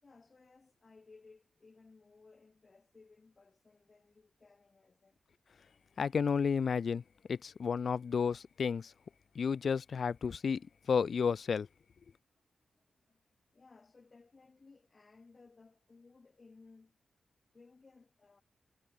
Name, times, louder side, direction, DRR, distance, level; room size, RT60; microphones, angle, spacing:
voice 1, 0.0-5.2 12.8-13.2 13.5-17.0 17.5-18.4, left 4 dB, 40° left, 3.9 m, -61 dB
voice 2, 6.0-7.0 7.3-8.9 9.4-10.6 10.9-11.7, left 6 dB, 65° left, 0.3 m, -31 dB
cardioid pair, 70°, 0 cm